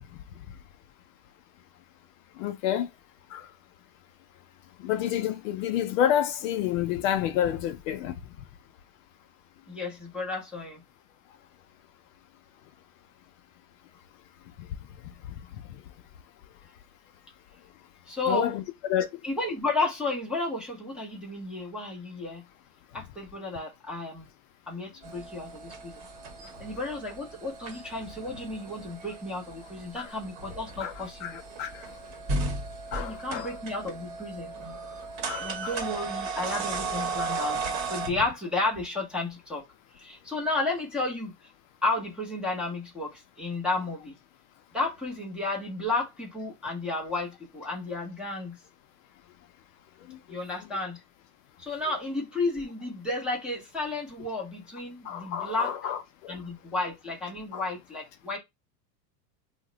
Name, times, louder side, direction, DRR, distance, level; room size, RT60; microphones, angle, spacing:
voice 1, 0.1-0.5 2.4-2.9 3.3-3.5 4.8-8.2 14.6-14.7 15.2-15.8 18.3-18.6 18.9-19.2 30.0-30.1 30.8-31.9 32.9-33.6 35.3-35.8 50.1-50.2 55.0-56.4 57.5-57.6, left 10 dB, 55° left, 0.5 m, -30 dB
voice 2, 9.7-10.8 18.1-18.5 19.2-22.4 22.9-24.3 24.7-26.0 26.6-31.4 33.0-34.5 35.4-37.6 37.9-39.6 40.0-41.3 41.8-44.1 44.7-48.6 50.3-51.0 51.6-55.7 56.3-58.4, left 2 dB, ahead, 0.5 m, -32 dB
sound 1, 25.0-38.1, right 3 dB, 35° right, 1.0 m, -36 dB
2.8 x 2.1 x 3.8 m
supercardioid pair, 150°, 48 cm